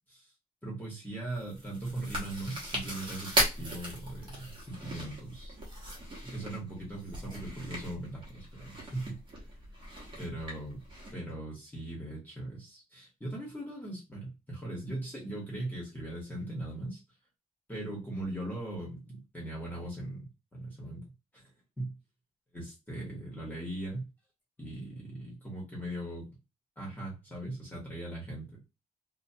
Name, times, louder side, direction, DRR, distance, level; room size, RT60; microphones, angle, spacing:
voice 1, 0.6-5.6 6.2-9.5 10.2-10.8 11.1-17.0 17.7-21.0 21.3-21.5 21.8-21.9 22.5-24.1 24.6-26.3 26.8-28.5, right 1 dB, 10° left, -4 dB, 1.2 m, -39 dB
Chewing mastication, 1.3-11.1, right 1 dB, 35° right, 1.1 m, -37 dB
2.8 x 2.3 x 2.8 m, 0.27 s
wide cardioid pair, 160°, 15 cm